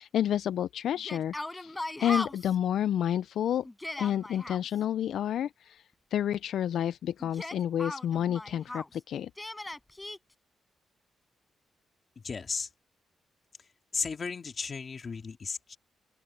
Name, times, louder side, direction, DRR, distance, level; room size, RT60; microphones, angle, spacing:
voice 1, 0.0-3.7 4.0-5.8 6.1-9.3, left 10 dB, 75° left, 0.3 m, -30 dB
Yell, 1.0-2.5 3.6-4.6 7.2-8.9 9.4-10.2, left 2 dB, 10° left, 4.3 m, -38 dB
voice 2, 12.2-12.7 13.9-15.8, left 5 dB, 35° left, 2.3 m, -35 dB
open air
cardioid pair, 145°, 0 cm